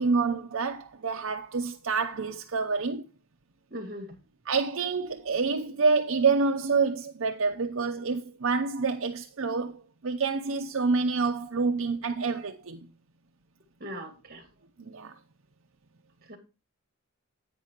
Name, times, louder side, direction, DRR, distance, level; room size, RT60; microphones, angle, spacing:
voice 1, 0.0-3.0 4.5-12.9 14.8-15.2, right 4 dB, 70° right, 0.6 m, -27 dB
voice 2, 3.7-4.2 13.8-14.5 16.3-16.4, equal, 45° right, 2.2 m, -40 dB
10.5 x 8.7 x 2.9 m
head